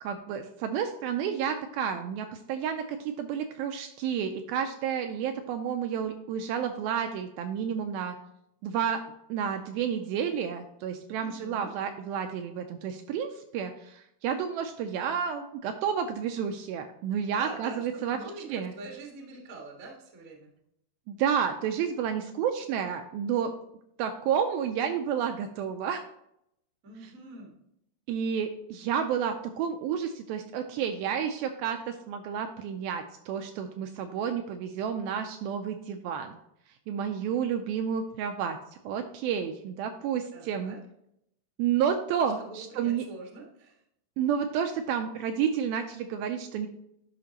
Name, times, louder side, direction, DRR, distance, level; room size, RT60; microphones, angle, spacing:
voice 1, 0.0-8.2 8.6-9.0 9.3-18.2 18.5-18.7 21.1-23.5 24.0-26.0 27.0-27.1 28.1-36.4 36.9-38.6 38.9-40.8 41.6-43.1 44.2-46.7, right 8 dB, 85° right, 6 dB, 2.2 m, -30 dB
voice 2, 11.2-11.7 17.3-20.5 26.8-27.6 40.3-40.8 42.2-43.8, right 3 dB, 60° right, -1 dB, 0.8 m, -44 dB
11.0 x 5.6 x 2.9 m, 0.76 s
omnidirectional pair, 4.6 m